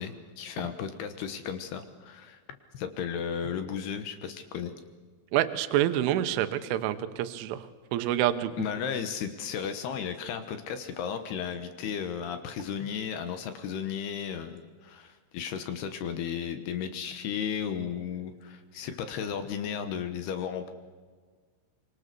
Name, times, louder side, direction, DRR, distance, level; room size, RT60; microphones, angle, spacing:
voice 1, 0.0-2.4 2.7-4.7 8.6-20.7, left 7 dB, 70° left, 8 dB, 2.7 m, -34 dB
voice 2, 5.3-7.7 7.9-8.5, right 12 dB, 80° right, 10 dB, 3.5 m, -27 dB
25.0 x 24.5 x 6.8 m, 1.5 s
omnidirectional pair, 5.7 m